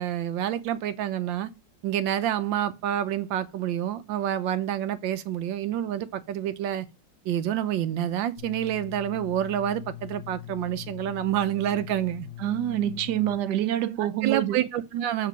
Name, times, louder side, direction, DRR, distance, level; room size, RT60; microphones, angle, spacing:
voice 1, 0.0-1.5 1.8-6.9 7.2-12.3 14.0-15.3, right 11 dB, 90° right, 1.5 m, -28 dB
sound 1, 8.4-13.4, left 14 dB, 45° left, 1.2 m, -41 dB
voice 2, 12.4-14.7, right 12 dB, 70° right, 1.2 m, -26 dB
7.5 x 3.7 x 6.2 m
omnidirectional pair, 2.0 m